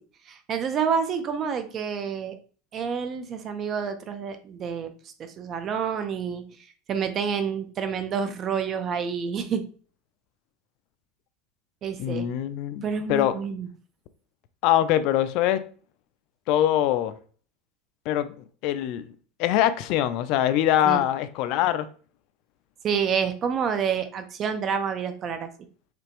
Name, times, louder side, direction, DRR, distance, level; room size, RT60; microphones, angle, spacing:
voice 1, 0.3-2.4 2.7-4.9 5.2-6.4 6.9-9.6 11.8-12.3 12.8-13.7 20.9-21.0 22.8-25.5, right 6 dB, 30° right, 0.5 m, -28 dB
voice 2, 12.0-13.4 14.6-15.6 16.5-17.1 18.1-18.3 18.6-19.1 19.4-21.9, left 12 dB, 50° left, 0.4 m, -23 dB
5.0 x 3.3 x 3.0 m
supercardioid pair, 160°, 0 cm